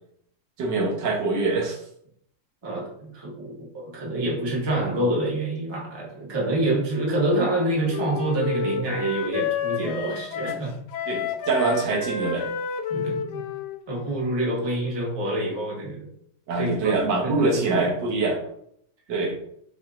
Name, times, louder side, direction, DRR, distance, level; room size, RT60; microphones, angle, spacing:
voice 1, 0.6-1.8 11.1-12.5 16.5-18.4 19.1-19.4, right 3 dB, 75° right, 0 dB, 1.5 m, -24 dB
voice 2, 2.6-10.7 12.9-13.4 13.9-16.1 16.6-16.9 17.2-17.9, right 1 dB, 20° right, -4 dB, 0.8 m, -27 dB
Wind instrument woodwind instrument, 6.9-14.9, left 5 dB, 70° left, 1.0 m, -31 dB
6.2 x 2.7 x 2.4 m, 0.69 s
omnidirectional pair, 2.0 m